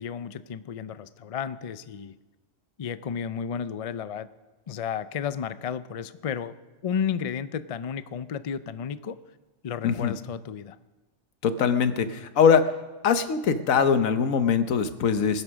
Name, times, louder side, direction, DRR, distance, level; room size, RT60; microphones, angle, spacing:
voice 1, 0.0-2.2 2.8-4.3 4.7-6.6 6.8-9.2 9.6-10.8, left 7 dB, 65° left, 14 dB, 0.3 m, -32 dB
voice 2, 9.8-10.1 11.4-12.6 13.0-15.4, left 6 dB, 85° left, 10 dB, 1.3 m, -22 dB
21.0 x 10.5 x 6.3 m, 1.2 s
omnidirectional pair, 1.4 m